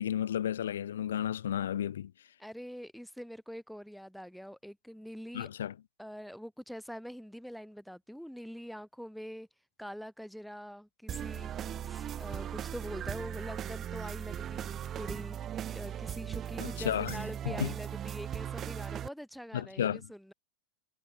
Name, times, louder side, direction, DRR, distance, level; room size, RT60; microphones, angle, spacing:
voice 1, 0.0-2.1 5.3-5.7 16.6-17.7 19.5-20.0, left 10 dB, 65° left, 0.8 m, -33 dB
voice 2, 2.4-5.5 6.0-9.5 9.8-15.4 15.7-20.3, equal, ahead, 1.9 m, -44 dB
sound 1, 11.1-19.1, right 10 dB, 25° right, 0.9 m, -38 dB
figure-of-eight pair, 90°, 0 cm